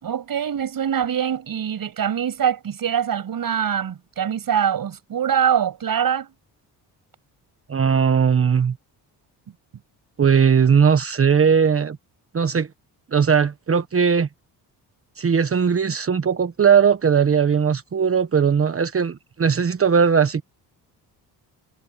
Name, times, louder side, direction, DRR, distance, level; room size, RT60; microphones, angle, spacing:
voice 1, 0.0-6.3, right 8 dB, 60° right, 7.2 m, -23 dB
voice 2, 7.7-8.8 10.2-12.0 12.3-12.7 13.1-14.3 15.2-20.4, right 6 dB, 35° right, 1.2 m, -18 dB
cardioid pair, 100°, 39 cm